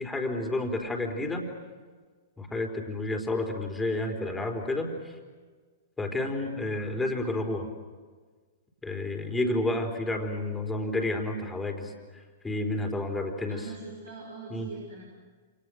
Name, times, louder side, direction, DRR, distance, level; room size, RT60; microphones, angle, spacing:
voice 1, 0.0-1.5 2.4-5.2 6.0-7.7 8.8-11.9 12.4-13.6 14.5-14.7, left 2 dB, 10° left, 4 dB, 4.3 m, -30 dB
voice 2, 13.5-15.0, right 3 dB, 80° right, -2 dB, 6.9 m, -42 dB
29.0 x 28.5 x 6.5 m, 1.5 s
figure-of-eight pair, 110°, 0 cm